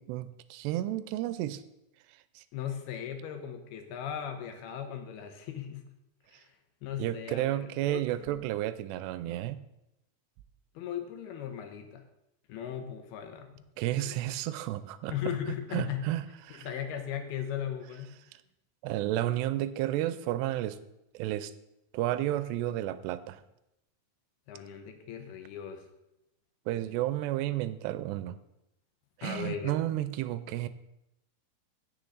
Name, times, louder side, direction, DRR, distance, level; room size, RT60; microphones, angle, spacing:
voice 1, 0.0-1.6 2.4-2.5 7.0-9.6 13.8-15.3 15.7-16.7 18.8-20.8 21.1-21.5 21.9-23.4 26.7-28.4 29.2-30.7, right 14 dB, 85° right, 14 dB, 2.6 m, -32 dB
voice 2, 2.5-5.8 6.3-6.6 6.8-8.5 10.7-12.0 12.5-13.6 14.0-14.1 15.1-16.0 16.5-18.1 24.5-25.9 29.2-29.8, left 9 dB, 75° left, 6 dB, 2.6 m, -38 dB
16.0 x 6.6 x 3.9 m, 0.87 s
omnidirectional pair, 4.9 m